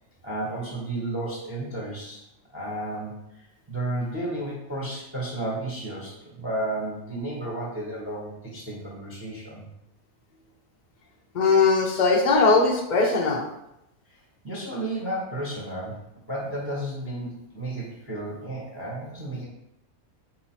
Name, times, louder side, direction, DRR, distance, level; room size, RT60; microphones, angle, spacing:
voice 1, 0.2-2.2 2.5-3.1 3.7-9.7 14.4-16.0 16.3-19.4, right 1 dB, 10° right, -4 dB, 0.7 m, -32 dB
voice 2, 11.3-13.5, left 4 dB, 55° left, -1 dB, 0.5 m, -20 dB
4.1 x 2.8 x 4.3 m, 0.83 s
omnidirectional pair, 1.5 m